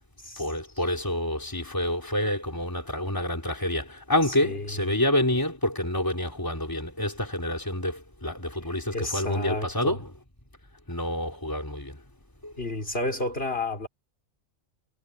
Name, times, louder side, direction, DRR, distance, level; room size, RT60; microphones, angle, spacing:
voice 1, 0.4-10.1 10.9-12.0 12.4-12.5, left 1 dB, 15° left, 3.9 m, -28 dB
voice 2, 4.4-4.8 8.9-10.0 12.6-13.9, left 2 dB, 45° left, 4.4 m, -31 dB
omnidirectional pair, 1.3 m